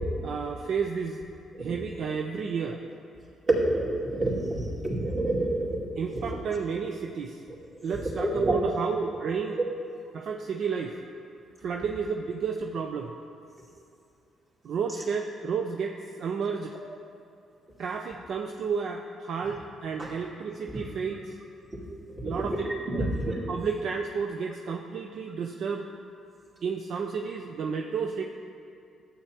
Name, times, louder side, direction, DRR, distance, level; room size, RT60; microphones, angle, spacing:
voice 1, 0.2-1.2 1.6-2.8 6.0-7.4 7.8-9.6 10.1-11.0 11.6-13.1 14.6-16.7 17.8-21.3 22.2-22.5 22.9-23.1 23.5-25.9 26.6-28.2, right 6 dB, 65° right, 3 dB, 0.4 m, -31 dB
voice 2, 3.5-5.8 6.2-6.3 8.1-8.6 20.0-20.1 20.7-20.8 22.2-22.7 23.0-23.4, right 1 dB, 35° right, -6 dB, 2.4 m, -28 dB
12.0 x 8.2 x 2.9 m, 2.5 s
cardioid pair, 90°, 0 cm